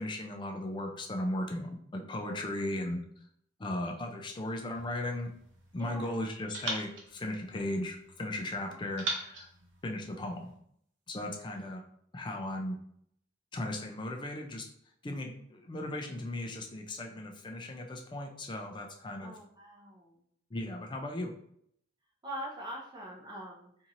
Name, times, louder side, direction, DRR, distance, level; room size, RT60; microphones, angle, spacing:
voice 1, 0.0-3.0 3.6-5.3 5.7-9.5 9.8-10.5 11.1-11.8 12.1-12.8 13.5-14.7 15.0-19.3 20.5-21.3, left 1 dB, 25° left, 3 dB, 0.4 m, -36 dB
sound 1, 4.7-5.9 6.5-8.2 9.0-10.6, right 2 dB, 70° right, 0.7 m, -41 dB
voice 2, 5.8-6.1 15.2-15.4 19.2-20.2 22.2-23.9, right 1 dB, 25° right, -2 dB, 0.6 m, -43 dB
3.0 x 2.7 x 2.5 m, 0.68 s
head